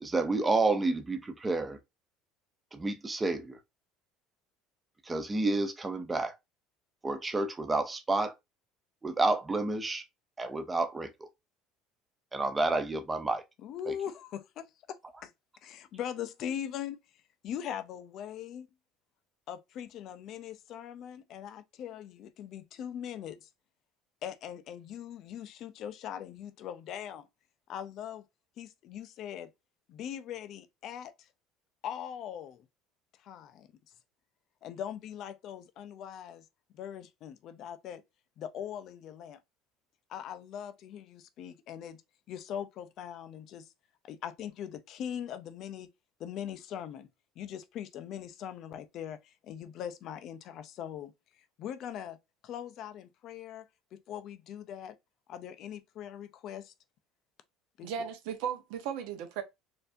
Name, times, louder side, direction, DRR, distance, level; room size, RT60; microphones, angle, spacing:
voice 1, 0.0-1.8 2.7-3.6 5.1-6.3 7.0-8.3 9.0-10.0 10.4-11.1 12.3-13.4 13.9-14.0, right 3 dB, 15° right, 0.5 m, -29 dB
voice 2, 13.6-15.3 15.6-17.0 17.4-18.7 19.5-23.5 24.2-27.3 27.7-28.2 28.6-29.5 29.9-31.3 31.8-32.7 33.2-33.7 34.6-36.5 36.7-38.0 38.4-39.4 40.1-42.0 42.3-43.7 44.0-45.9 46.2-47.1 47.4-51.1 51.6-52.2 52.4-55.0 55.3-56.7 57.8-57.9, left 9 dB, 45° left, 0.4 m, -41 dB
voice 3, 57.8-59.4, right 8 dB, 75° right, 0.9 m, -36 dB
4.3 x 2.6 x 2.5 m
cardioid pair, 160°, 0 cm